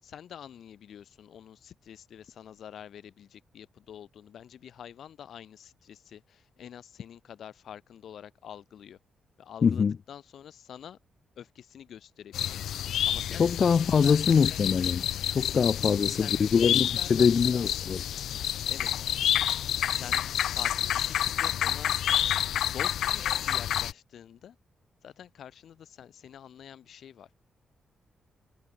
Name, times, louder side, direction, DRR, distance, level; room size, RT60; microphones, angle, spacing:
voice 1, 0.0-9.0 9.4-11.0 11.4-12.6 13.0-14.6 15.8-17.8 18.7-18.9 19.9-21.9 22.6-24.6 25.0-27.3, left 9 dB, 65° left, 5.0 m, -47 dB
voice 2, 9.6-9.9 13.4-15.1 15.3-18.0, left 6 dB, 40° left, 0.4 m, -23 dB
sound 1, 12.3-23.9, left 11 dB, 90° left, 1.5 m, -29 dB
wide cardioid pair, 150°, 0 cm